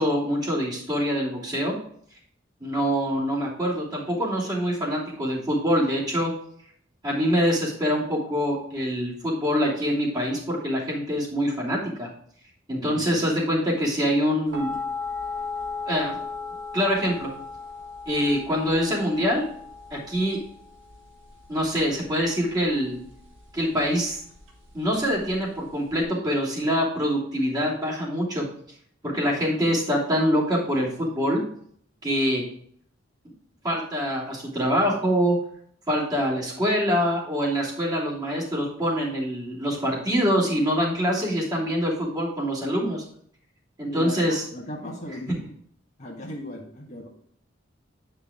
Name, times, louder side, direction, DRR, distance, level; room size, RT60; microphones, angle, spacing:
voice 1, 0.0-1.7 2.6-6.3 7.0-12.1 12.7-14.7 15.9-16.2 16.7-17.3 18.1-19.4 19.9-20.4 21.5-23.0 23.5-24.2 24.7-28.4 29.0-31.4 32.0-32.4 33.6-35.4 35.9-43.0 43.8-44.4, equal, 20° right, -6 dB, 2.8 m, -25 dB
sound 1, 14.5-26.0, left 4 dB, 80° right, 1.6 m, -37 dB
voice 2, 43.9-45.5 46.0-47.1, left 1 dB, 40° left, -1 dB, 1.4 m, -37 dB
9.6 x 5.7 x 3.6 m, 0.63 s
head